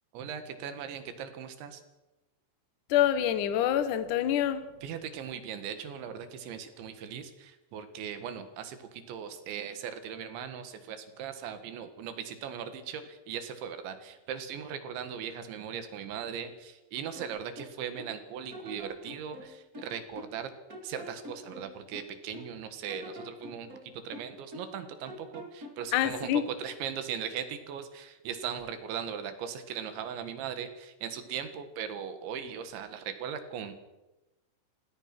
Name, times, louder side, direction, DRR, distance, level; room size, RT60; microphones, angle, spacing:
voice 1, 0.1-1.8 4.8-20.5 20.8-23.7 24.0-33.7, right 8 dB, 70° right, 3.9 m, -39 dB
voice 2, 2.9-4.6 25.9-26.5, left 11 dB, 70° left, 2.0 m, -26 dB
sound 1, 17.1-18.2 18.5-20.4 20.7-22.5 22.9-24.8 25.1-25.9, left 1 dB, 25° right, 2.3 m, -46 dB
27.0 x 17.5 x 6.1 m
omnidirectional pair, 5.6 m